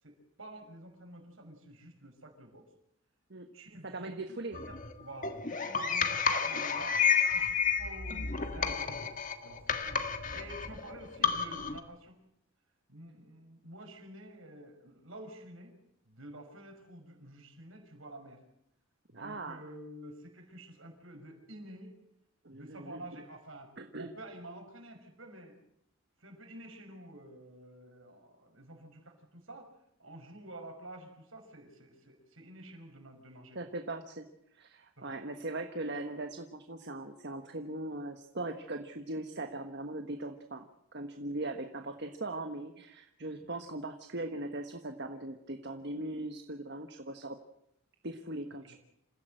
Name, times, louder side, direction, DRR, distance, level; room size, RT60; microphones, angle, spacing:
voice 1, 0.0-2.7 3.5-4.1 4.5-7.0 7.3-9.1 9.4-9.8 10.3-12.2 12.9-15.8 16.1-18.4 19.1-22.0 22.5-25.6 26.2-29.7 30.0-33.6 35.0-35.1 43.4-43.5 48.6-48.8, right 1 dB, 70° right, 4 dB, 5.9 m, -49 dB
voice 2, 3.8-4.6 9.8-9.9 19.1-19.6 22.4-23.0 23.8-24.1 33.5-34.3 34.5-47.4 48.0-48.7, right 2 dB, 55° right, 6 dB, 1.3 m, -40 dB
sound 1, 4.5-11.8, left 6 dB, 40° left, 1.6 m, -31 dB
27.5 x 16.0 x 7.8 m, 0.79 s
head